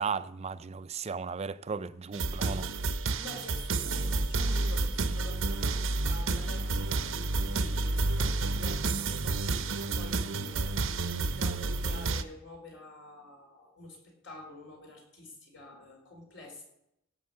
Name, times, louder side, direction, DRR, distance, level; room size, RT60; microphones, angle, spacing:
voice 1, 0.0-2.7, right 5 dB, 35° right, 0.4 m, -35 dB
sound 1, 2.1-12.2, right 3 dB, 85° right, 0.8 m, -30 dB
voice 2, 3.2-16.6, left 1 dB, 65° left, 4.6 m, -48 dB
17.0 x 6.5 x 6.6 m
head